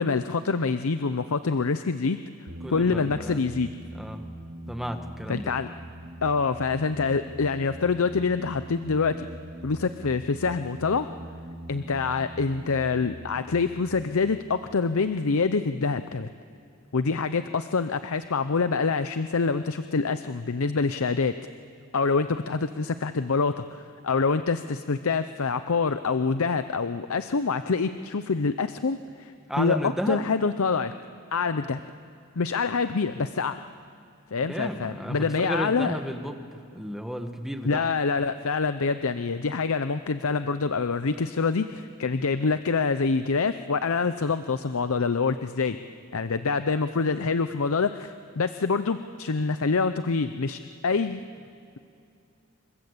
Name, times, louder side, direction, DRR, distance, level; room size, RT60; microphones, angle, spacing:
voice 1, 0.0-2.2 2.7-3.7 5.3-5.7 6.2-9.3 9.6-11.1 11.7-16.3 16.9-21.3 21.9-29.3 29.6-30.9 31.3-31.8 32.4-33.6 34.3-35.9 37.6-45.8 46.1-51.2, left 4 dB, 70° left, 11 dB, 0.7 m, -26 dB
sound 1, 2.5-15.7, right 1 dB, 70° right, 3.0 m, -43 dB
voice 2, 2.6-3.5 3.9-4.3 4.7-5.6 29.5-30.2 34.4-37.9, equal, ahead, 6 dB, 1.4 m, -33 dB
27.5 x 23.0 x 8.1 m, 2.5 s
head